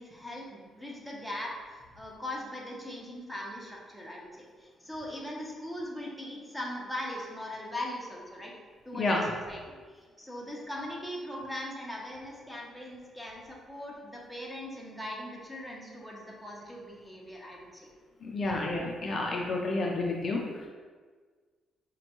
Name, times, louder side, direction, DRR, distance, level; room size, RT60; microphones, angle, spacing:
voice 1, 0.0-8.5 8.8-9.6 9.9-17.9 18.5-18.6, left 1 dB, ahead, -3 dB, 0.8 m, -40 dB
voice 2, 8.9-9.2 18.2-20.7, left 2 dB, 45° left, -1 dB, 0.5 m, -30 dB
5.1 x 2.2 x 3.0 m, 1.5 s
cardioid pair, 90°, 0 cm